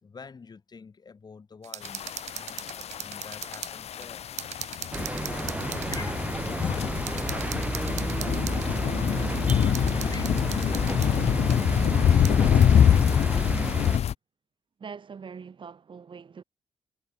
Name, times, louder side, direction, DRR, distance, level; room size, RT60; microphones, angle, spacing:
voice 1, 0.0-4.3 5.0-6.3 6.7-8.9 9.9-11.7 12.7-13.5, left 5 dB, 35° left, 4.2 m, -47 dB
sound 1, 1.6-3.7 4.0-4.1 4.4-6.0 6.6-6.7 7.1-8.7 9.5-11.1 11.5-11.6 12.2-12.3, right 11 dB, 75° right, 0.6 m, -39 dB
sound 2, 1.8-14.1, left 9 dB, 65° left, 0.8 m, -25 dB
sound 3, 4.9-14.0, right 2 dB, 10° right, 1.3 m, -31 dB
voice 2, 14.8-16.4, right 6 dB, 45° right, 7.3 m, -42 dB
cardioid pair, 120°, 12 cm